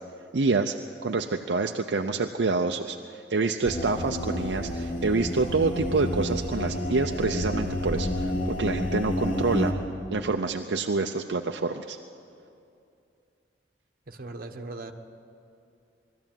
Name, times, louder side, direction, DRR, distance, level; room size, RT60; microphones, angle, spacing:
voice 1, 0.3-0.8 1.0-9.7 10.1-12.0, right 3 dB, 75° right, 4 dB, 0.7 m, -27 dB
sound 1, 3.6-9.7, left 1 dB, 50° left, 2.5 m, -30 dB
voice 2, 14.1-14.9, right 2 dB, 55° right, 5 dB, 1.3 m, -39 dB
21.5 x 14.0 x 9.1 m, 2.5 s
head